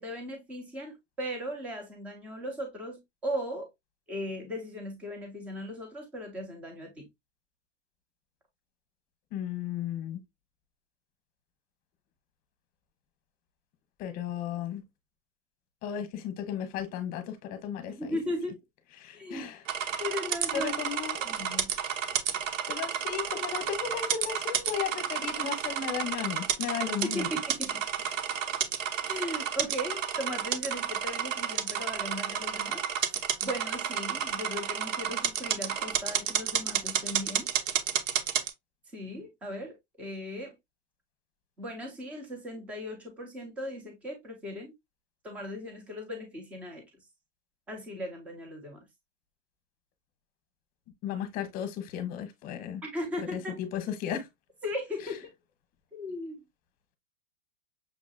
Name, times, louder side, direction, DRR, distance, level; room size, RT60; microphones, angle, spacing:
voice 1, 0.0-3.7 4.1-7.1 17.9-18.6 19.1-19.5 20.0-20.7 21.2-21.7 27.0-27.9 29.0-37.5 38.9-40.6 41.6-44.7 45.2-46.8 47.7-48.8 52.8-53.6 54.6-55.3 55.9-56.4, equal, 5° right, 0.3 m, -37 dB
voice 2, 9.3-10.2 14.0-14.8 15.8-18.0 19.0-20.0 20.5-21.2 22.7-27.3 51.0-52.8 53.2-54.3, left 9 dB, 25° left, 0.8 m, -35 dB
sound 1, 19.7-38.5, right 8 dB, 85° right, 1.0 m, -31 dB
6.2 x 2.8 x 2.6 m
supercardioid pair, 160°, 37 cm